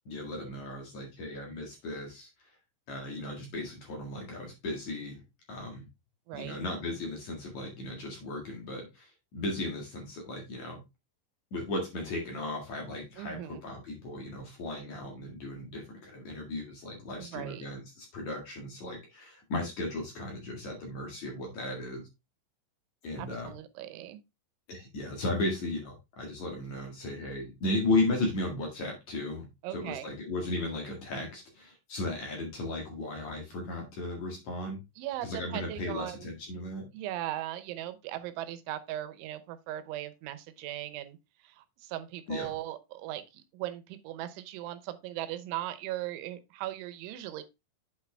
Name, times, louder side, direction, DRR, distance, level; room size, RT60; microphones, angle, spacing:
voice 1, 0.1-2.5 2.9-5.2 5.5-5.9 6.3-10.8 11.5-22.1 23.0-23.5 24.7-34.8 35.2-36.9 42.3-42.5, left 2 dB, 50° left, 2.6 m, -35 dB
voice 2, 6.3-6.6 13.2-13.6 17.1-17.6 23.2-24.2 29.6-30.1 35.0-36.3 36.9-47.4, right 13 dB, 90° right, 3.3 m, -38 dB
8.4 x 6.0 x 3.4 m
omnidirectional pair, 5.2 m